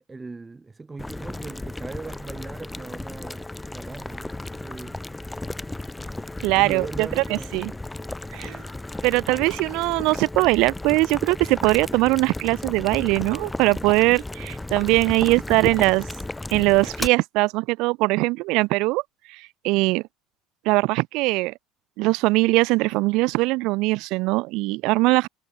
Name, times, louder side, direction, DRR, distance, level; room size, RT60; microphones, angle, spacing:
voice 1, 0.1-5.0 6.4-7.6, right 3 dB, 15° right, 7.0 m, -39 dB
Boiling, 1.0-17.1, left 2 dB, 10° left, 4.0 m, -34 dB
voice 2, 6.4-7.7 8.3-8.6 9.0-16.1 16.5-19.0 19.3-20.0 20.7-21.5 22.0-25.3, right 23 dB, 70° right, 0.4 m, -21 dB
supercardioid pair, 115°, 0 cm